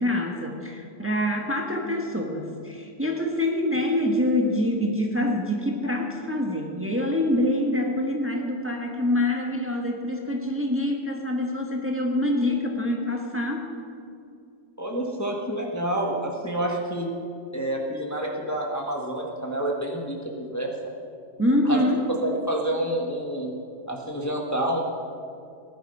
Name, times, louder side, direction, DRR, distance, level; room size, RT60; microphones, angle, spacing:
voice 1, 0.0-13.7 21.4-22.1, left 1 dB, 10° right, 1 dB, 1.4 m, -25 dB
voice 2, 14.8-17.1 17.5-20.7 21.6-21.8 22.1-23.5 23.9-24.8, right 1 dB, 15° left, -1 dB, 1.4 m, -28 dB
18.5 x 11.5 x 5.5 m, 2.5 s
omnidirectional pair, 1.3 m